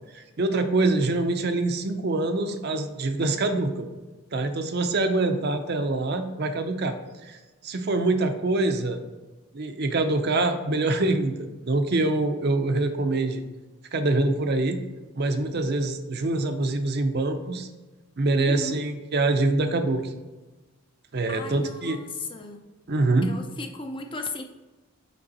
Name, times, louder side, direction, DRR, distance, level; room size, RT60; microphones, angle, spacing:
voice 1, 0.1-3.9 4.3-7.0 7.2-7.4 7.6-9.0 9.5-13.4 13.9-14.8 15.1-17.7 18.2-20.1 21.1-22.0 22.9-23.3, right 2 dB, 45° right, 7 dB, 0.5 m, -25 dB
voice 2, 18.4-18.8 21.3-22.6 23.2-24.4, left 3 dB, 20° left, 5 dB, 0.4 m, -36 dB
5.2 x 4.7 x 4.1 m, 1.2 s
head